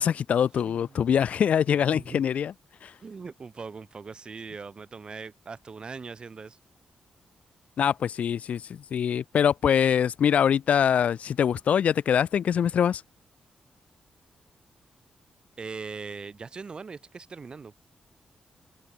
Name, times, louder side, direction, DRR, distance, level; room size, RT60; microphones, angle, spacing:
voice 1, 0.0-2.5 2.8-2.9 7.8-8.6 8.9-13.0, left 8 dB, 70° left, 0.3 m, -23 dB
voice 2, 0.6-1.5 1.9-2.2 3.0-6.6 15.6-17.7, right 4 dB, 40° right, 3.1 m, -41 dB
wide cardioid pair, 110°, 2 cm